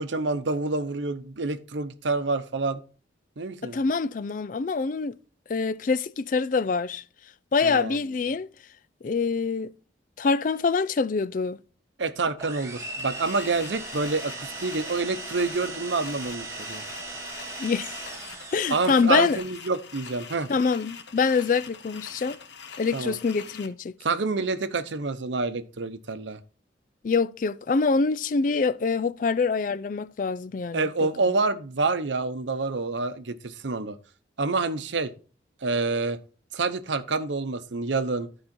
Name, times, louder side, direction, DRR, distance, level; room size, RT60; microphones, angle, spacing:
voice 1, 0.0-2.8 3.4-3.8 7.6-8.0 12.0-16.8 18.7-20.5 22.9-23.1 24.0-26.4 30.7-34.0 34.4-35.1 35.6-36.2 36.5-38.3, right 3 dB, 75° right, 0.8 m, -27 dB
voice 2, 3.7-5.1 5.5-7.0 7.5-8.5 9.0-9.7 10.2-11.6 17.6-18.0 18.5-19.4 20.5-22.4 22.8-23.9 27.0-30.9, left 4 dB, 45° left, 0.3 m, -25 dB
sound 1, 12.4-19.1, right 2 dB, 15° right, 1.4 m, -38 dB
sound 2, 13.0-23.7, left 6 dB, 70° left, 0.9 m, -44 dB
12.5 x 4.9 x 4.3 m
head